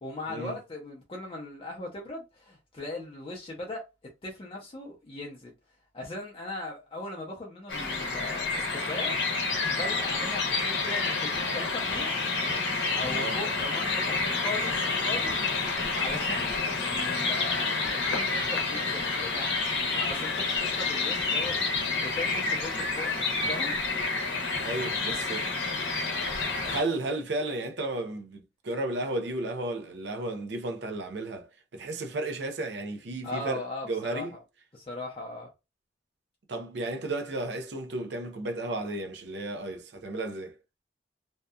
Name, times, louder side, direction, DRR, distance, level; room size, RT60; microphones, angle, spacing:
voice 1, 0.0-3.8 4.2-5.5 5.9-12.1 12.9-15.4 16.0-19.5 19.9-23.8 33.2-34.4 34.7-35.5, left 2 dB, 30° left, 0.5 m, -39 dB
sound 1, 7.7-26.8, left 3 dB, 85° left, 0.8 m, -29 dB
voice 2, 13.1-13.4 24.5-25.5 26.6-33.6 33.9-34.3 36.5-40.6, right 2 dB, 70° right, 0.5 m, -33 dB
2.7 x 2.2 x 2.3 m
head